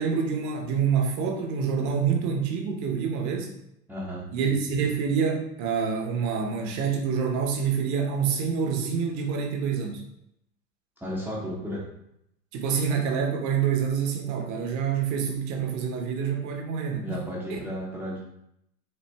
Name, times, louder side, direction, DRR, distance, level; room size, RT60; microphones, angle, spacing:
voice 1, 0.0-3.5 4.3-10.0 12.5-17.2 17.5-17.6, right 6 dB, 40° right, 3 dB, 0.8 m, -27 dB
voice 2, 3.9-4.2 11.0-11.8 17.0-18.2, equal, 5° right, -6 dB, 0.6 m, -33 dB
4.2 x 2.5 x 3.3 m, 0.78 s
hypercardioid pair, 100°, 48 cm